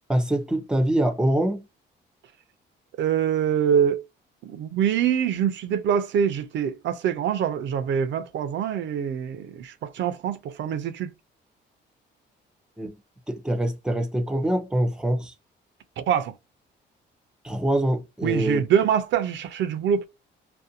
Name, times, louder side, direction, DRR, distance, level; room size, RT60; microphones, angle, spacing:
voice 1, 0.1-1.6 12.8-12.9 13.3-15.3 17.4-18.6, right 1 dB, 5° right, 0.5 m, -24 dB
voice 2, 3.0-4.0 4.4-11.1 16.1-16.3 18.2-20.1, right 8 dB, 70° right, 0.4 m, -24 dB
2.5 x 2.1 x 2.6 m
cardioid pair, 90°, 20 cm